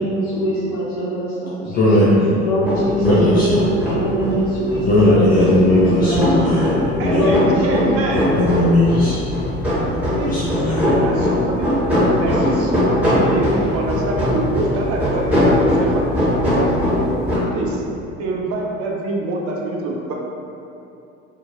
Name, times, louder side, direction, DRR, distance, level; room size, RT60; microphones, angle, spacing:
voice 1, 0.0-1.8 2.4-6.2 7.1-7.8 9.9-10.4, equal, 60° left, -10 dB, 1.3 m, -23 dB
voice 2, 1.6-2.4 3.0-3.5 4.8-7.2 8.1-9.2 10.2-11.0, left 1 dB, 25° left, -8 dB, 0.4 m, -17 dB
sound 1, 2.6-17.4, left 1 dB, 5° right, 1.4 m, -20 dB
voice 3, 7.0-8.3 10.1-10.4 10.8-11.7 12.2-16.0 16.4-16.7 17.5-17.8 18.2-20.1, right 2 dB, 40° right, -1 dB, 0.5 m, -25 dB
2.8 x 2.5 x 2.5 m, 2.7 s
figure-of-eight pair, 60°, 37 cm